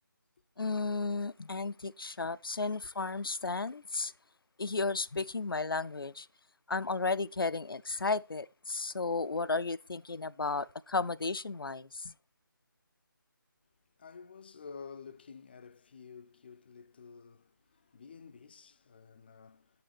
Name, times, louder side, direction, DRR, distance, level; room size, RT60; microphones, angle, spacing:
voice 1, 0.6-4.1 4.6-6.3 6.7-12.1, left 3 dB, 85° left, 0.5 m, -34 dB
voice 2, 14.0-19.8, left 5 dB, 30° left, 0.4 m, -51 dB
8.6 x 6.7 x 4.2 m
figure-of-eight pair, 155°, 12 cm